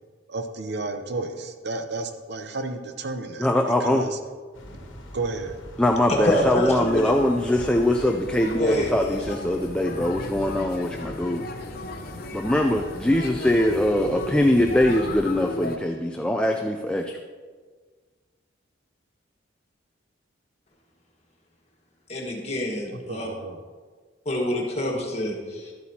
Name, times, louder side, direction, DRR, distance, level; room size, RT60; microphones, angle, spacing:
voice 1, 0.3-3.5 3.8-4.2 5.1-5.6 22.9-23.6, right 3 dB, 60° right, 7 dB, 0.7 m, -32 dB
voice 2, 3.4-4.0 5.8-11.4 12.3-17.2, left 1 dB, 5° left, 3 dB, 0.4 m, -22 dB
sound 1, 4.5-15.0, equal, 85° left, 1.3 m, -42 dB
voice 3, 6.1-7.1 8.6-9.2 22.1-23.3 24.3-25.7, equal, 35° left, -1 dB, 1.6 m, -26 dB
sound 2, 6.9-15.8, left 2 dB, 50° left, 0.7 m, -35 dB
12.5 x 8.3 x 2.8 m, 1.5 s
head